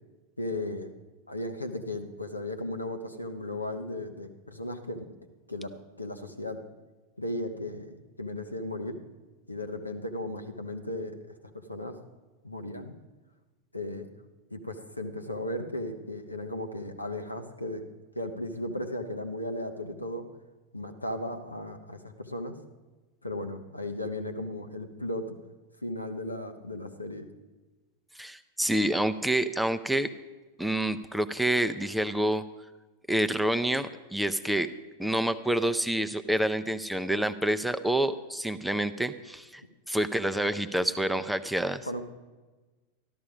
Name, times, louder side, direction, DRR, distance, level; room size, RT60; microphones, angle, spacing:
voice 1, 0.4-0.9 1.3-5.1 5.5-5.7 6.0-6.6 7.2-9.0 9.5-12.0 12.4-13.0 13.7-14.1 14.5-17.9 18.1-20.3 20.7-22.6 23.2-25.4 25.8-27.3 41.9-42.0, left 1 dB, 85° left, 6 dB, 1.0 m, -36 dB
voice 2, 28.2-30.1 30.6-32.4 33.1-34.7 35.0-39.6 39.9-41.8, right 1 dB, ahead, 10 dB, 0.6 m, -28 dB
13.5 x 12.5 x 4.9 m, 1.2 s
figure-of-eight pair, 90°, 0 cm